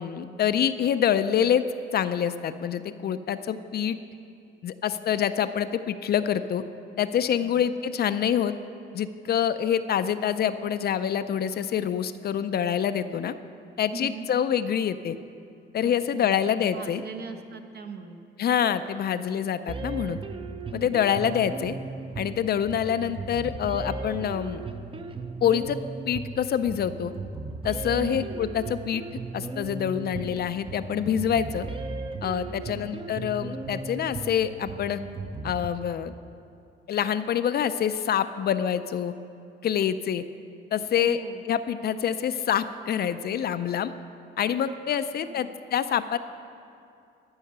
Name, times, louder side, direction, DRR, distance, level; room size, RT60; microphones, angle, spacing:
voice 1, 0.0-1.6 1.9-4.0 4.6-6.6 7.0-8.6 8.9-13.3 13.8-15.2 15.7-17.0 18.4-20.2 20.7-21.8 22.2-24.6 25.4-25.8 26.1-27.1 27.6-29.0 29.3-31.7 32.2-35.0 35.4-36.1 36.9-39.1 39.6-40.2 40.7-41.2 41.5-43.9 44.4-46.2, left 9 dB, 55° left, 12 dB, 0.4 m, -26 dB
voice 2, 13.9-14.3 15.8-18.2 20.7-21.0 27.9-28.3 32.5-32.9 41.0-41.4 44.7-44.8 45.1-45.6, right 4 dB, 55° right, 6 dB, 1.0 m, -40 dB
sound 1, 19.7-35.7, right 3 dB, 25° right, 0.6 m, -36 dB
13.5 x 5.6 x 6.7 m, 2.5 s
cardioid pair, 90°, 20 cm